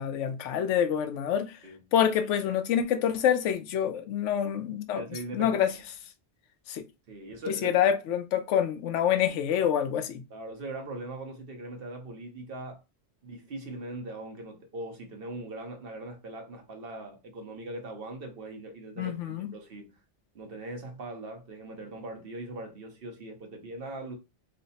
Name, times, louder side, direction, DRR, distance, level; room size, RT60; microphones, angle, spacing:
voice 1, 0.0-1.5 1.9-5.0 5.3-5.7 6.7-6.8 7.5-10.2 19.0-19.5, left 9 dB, 85° left, 0.9 m, -26 dB
voice 2, 4.9-5.6 7.1-7.8 10.3-12.8 13.2-20.0 20.3-24.2, right 2 dB, 55° right, 1.0 m, -40 dB
3.1 x 2.0 x 4.0 m
omnidirectional pair, 1.2 m